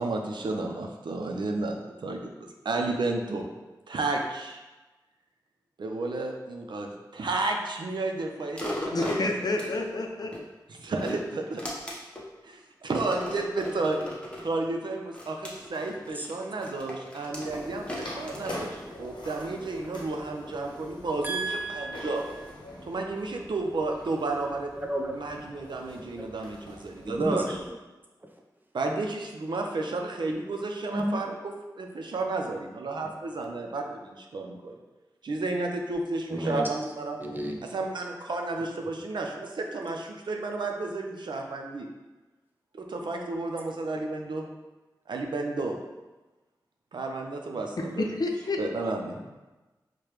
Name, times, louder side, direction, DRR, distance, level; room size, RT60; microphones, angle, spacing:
voice 1, 0.0-2.3 2.6-3.5 3.9-4.6 5.8-9.3 10.8-11.8 12.4-14.0 14.4-22.2 22.9-24.7 25.1-27.6 28.7-31.3 31.8-34.8 35.2-37.2 37.6-41.9 42.7-44.5 45.1-45.8 46.9-48.1 48.6-49.2, right 3 dB, 75° right, 2 dB, 0.5 m, -32 dB
sound 1, 8.5-10.4 10.9-12.3 12.9-14.5 15.1-19.3 19.8-19.9, left 1 dB, 15° left, 0.8 m, -37 dB
voice 2, 8.9-10.3 47.8-48.6, left 2 dB, 55° left, 2 dB, 0.5 m, -29 dB
sound 2, 17.4-27.7, left 1 dB, 90° left, 0.7 m, -44 dB
voice 3, 21.2-22.1 24.8-25.2 26.2-26.3 27.0-27.4 30.9-31.2 33.0-33.1 36.3-36.7 37.2-37.6 49.1-49.2, right 1 dB, 25° right, 1 dB, 0.6 m, -32 dB
4.8 x 2.2 x 3.0 m, 1.1 s
cardioid pair, 50°, 8 cm